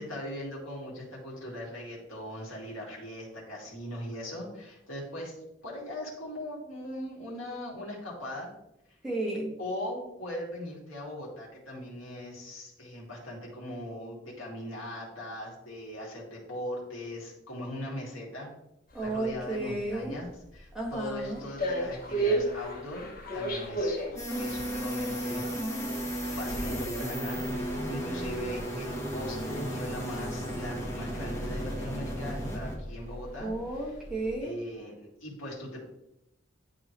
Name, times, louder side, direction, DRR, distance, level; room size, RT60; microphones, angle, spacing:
voice 1, 0.0-5.3 5.6-8.5 9.6-18.5 19.0-25.5 26.2-33.5 33.8-33.9 34.4-35.8, left 1 dB, 90° left, -4 dB, 2.6 m, -40 dB
voice 2, 9.0-9.5 18.9-20.2 20.7-21.4 33.4-34.6, right 2 dB, 5° right, -4 dB, 1.7 m, -33 dB
sound 1, 18.9-34.4, right 1 dB, 45° left, 1.1 m, -37 dB
sound 2, 24.2-32.8, equal, 15° left, 1.2 m, -34 dB
11.0 x 3.8 x 3.1 m, 0.84 s
head